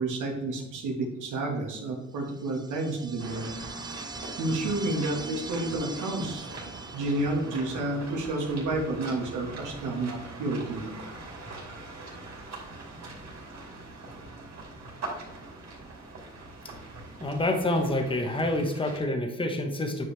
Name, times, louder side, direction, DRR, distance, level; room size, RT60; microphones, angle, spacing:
voice 1, 0.0-3.5 4.4-6.5 6.9-10.9, right 2 dB, 85° right, 1 dB, 1.8 m, -30 dB
sound 1, 2.3-7.7, right 4 dB, 15° right, 0.4 m, -42 dB
sound 2, 3.2-19.0, right 2 dB, 60° right, 2.8 m, -42 dB
voice 2, 17.2-20.0, left 1 dB, 15° left, 4 dB, 1.2 m, -27 dB
9.3 x 5.4 x 3.4 m, 0.98 s
cardioid pair, 90°, 30 cm